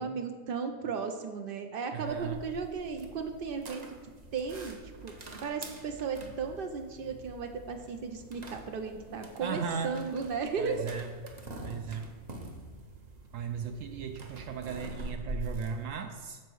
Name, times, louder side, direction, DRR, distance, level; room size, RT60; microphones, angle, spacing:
voice 1, 0.0-3.8 4.3-4.8 5.0-5.1 5.4-10.8, right 5 dB, 90° right, 5 dB, 0.4 m, -35 dB
voice 2, 1.9-2.4 9.4-10.0 10.6-11.1 11.6-12.1 13.3-16.4, right 6 dB, 70° right, 6 dB, 0.8 m, -36 dB
sound 1, 2.1-15.9, right 1 dB, 40° right, 0.6 m, -45 dB
6.9 x 4.3 x 6.1 m, 1.5 s
omnidirectional pair, 1.6 m